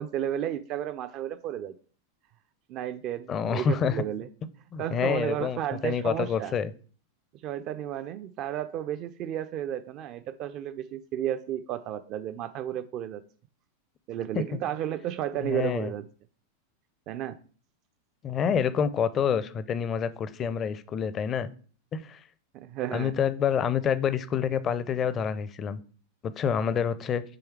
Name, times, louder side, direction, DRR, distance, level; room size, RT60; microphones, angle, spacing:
voice 1, 0.0-1.7 2.7-4.3 4.8-6.5 7.4-13.2 14.1-16.0 17.1-17.4 22.5-23.1, right 11 dB, 40° right, 0.4 m, -33 dB
voice 2, 3.3-4.0 4.7-6.7 14.3-14.6 15.4-15.9 18.2-21.5 21.9-22.2 22.9-25.8 26.2-27.2, left 7 dB, 25° left, 0.5 m, -27 dB
7.7 x 3.3 x 4.7 m
figure-of-eight pair, 90°, 0 cm